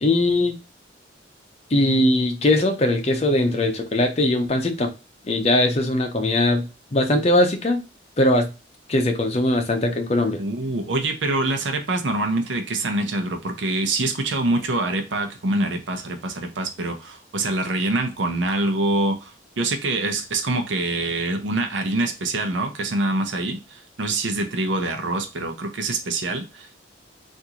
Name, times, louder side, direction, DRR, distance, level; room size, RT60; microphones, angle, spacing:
voice 1, 0.0-0.6 1.7-4.9 5.2-7.8 8.2-8.5 8.9-10.4, left 1 dB, 35° left, 5 dB, 0.6 m, -20 dB
voice 2, 10.4-26.8, right 2 dB, 85° right, 6 dB, 0.7 m, -25 dB
3.6 x 2.6 x 2.8 m, 0.29 s
head